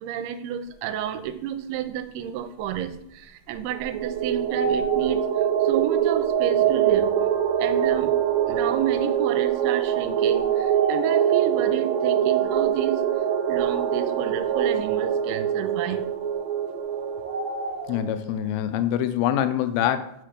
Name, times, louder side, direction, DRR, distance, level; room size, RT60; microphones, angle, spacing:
voice 1, 0.0-5.2 5.6-7.1 7.6-8.1 8.5-13.0 13.5-16.0, right 10 dB, 85° right, 10 dB, 2.5 m, -31 dB
Tawny Owls, 2.6-2.7 3.5-5.4 6.2-6.3 7.8-7.9 10.3-11.5 17.2-18.0, right 1 dB, 25° right, 1.1 m, -32 dB
sound 1, 3.7-18.1, right 9 dB, 65° right, 1.8 m, -24 dB
voice 2, 17.9-20.1, left 10 dB, 85° left, 10 dB, 2.4 m, -25 dB
5.9 x 5.8 x 4.9 m, 0.80 s
omnidirectional pair, 4.4 m